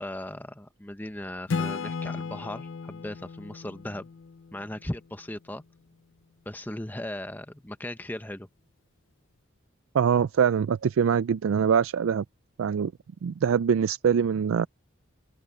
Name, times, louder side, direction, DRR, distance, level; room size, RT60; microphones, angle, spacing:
voice 1, 0.0-4.1 4.5-5.6 6.5-8.5, left 1 dB, 10° left, 0.8 m, -37 dB
Acoustic guitar / Strum, 1.5-5.1, left 4 dB, 70° left, 0.5 m, -35 dB
voice 2, 9.9-12.2 12.6-12.9 13.2-14.7, right 7 dB, 85° right, 0.4 m, -23 dB
open air
head